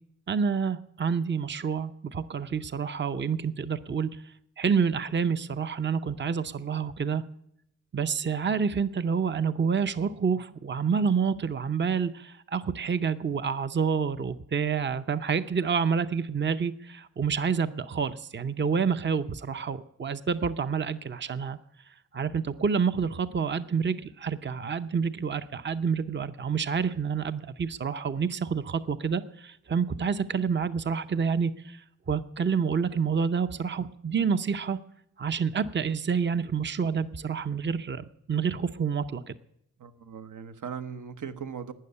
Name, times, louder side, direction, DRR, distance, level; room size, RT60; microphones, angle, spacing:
voice 1, 0.3-4.2 4.6-7.2 7.9-21.6 22.1-34.8 35.2-39.3, right 6 dB, 35° right, 11 dB, 0.6 m, -28 dB
voice 2, 39.8-41.7, right 7 dB, 75° right, 9 dB, 1.1 m, -38 dB
12.5 x 9.6 x 9.7 m, 0.75 s
wide cardioid pair, 95°, 31 cm